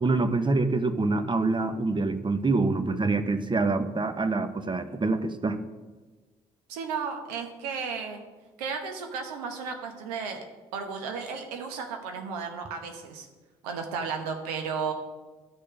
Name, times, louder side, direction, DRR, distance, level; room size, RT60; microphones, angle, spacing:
voice 1, 0.0-5.6, right 3 dB, 25° right, 10 dB, 1.1 m, -26 dB
voice 2, 6.7-8.2 8.6-10.4 10.7-13.3 13.6-14.9, right 5 dB, 80° right, 5 dB, 1.2 m, -34 dB
12.0 x 6.6 x 5.1 m, 1.3 s
hypercardioid pair, 45°, 19 cm